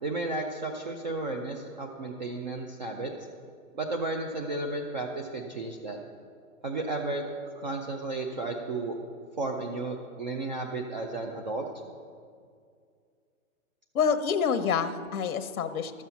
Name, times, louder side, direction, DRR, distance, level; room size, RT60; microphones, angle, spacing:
voice 1, 0.0-3.1 3.7-6.0 6.6-7.2 7.6-8.9 9.4-11.7, right 2 dB, 35° right, 3 dB, 0.5 m, -33 dB
voice 2, 13.9-16.0, left 6 dB, 85° left, 9 dB, 0.9 m, -27 dB
12.0 x 7.5 x 6.9 m, 2.2 s
hypercardioid pair, 170°, 42 cm